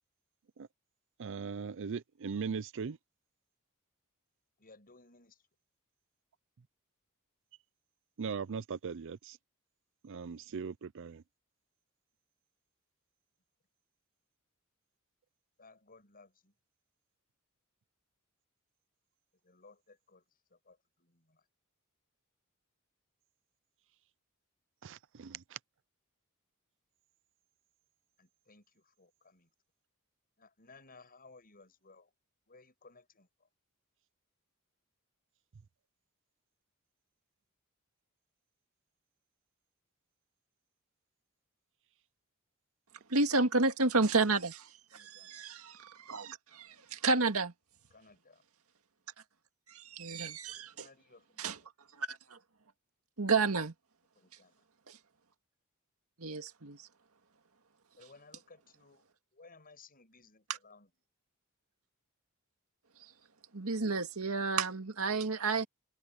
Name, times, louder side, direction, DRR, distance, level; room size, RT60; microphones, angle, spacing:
voice 1, 1.2-3.0 8.2-9.4 10.0-11.2 24.8-25.6, right 5 dB, 60° right, 0.5 m, -39 dB
voice 2, 4.6-5.5 15.6-16.5 19.4-21.5 28.2-29.5 30.4-32.1 32.5-33.5 44.9-45.5 47.9-48.4 50.5-51.6 54.1-54.6 58.0-59.0 59.3-60.9, left 3 dB, 45° left, 8.0 m, -60 dB
voice 3, 43.1-47.5 49.7-50.9 51.4-51.6 52.0-52.4 53.2-53.7 54.9-55.0 56.2-56.8 63.5-65.7, right 3 dB, 85° right, 2.0 m, -31 dB
head